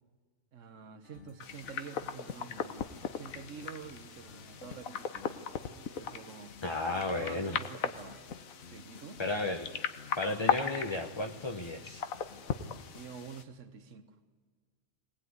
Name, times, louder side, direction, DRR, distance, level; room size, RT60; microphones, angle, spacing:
voice 1, 0.5-6.6 7.1-8.2 8.7-9.2 12.9-14.2, right 6 dB, 65° right, 8 dB, 1.6 m, -48 dB
sound 1, 1.0-13.1, left 4 dB, 60° left, 2.1 m, -55 dB
sound 2, 1.4-13.4, left 7 dB, 85° left, 1.4 m, -38 dB
voice 2, 6.6-7.6 9.2-9.7 10.2-12.0, left 2 dB, 25° left, 4 dB, 0.9 m, -33 dB
22.0 x 18.5 x 9.7 m, 1.5 s
omnidirectional pair, 1.4 m